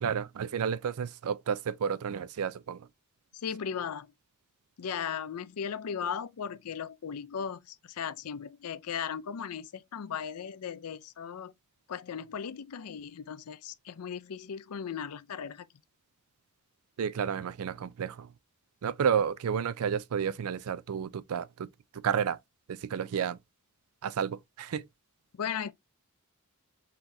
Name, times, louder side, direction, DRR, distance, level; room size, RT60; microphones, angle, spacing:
voice 1, 0.0-2.8 17.0-18.3 18.8-21.7 22.0-22.4 22.7-23.4 24.0-24.8, right 7 dB, 70° right, 0.4 m, -31 dB
voice 2, 3.3-4.1 4.8-11.5 11.9-15.7 25.3-25.7, left 7 dB, 80° left, 0.5 m, -37 dB
4.5 x 3.8 x 2.6 m
head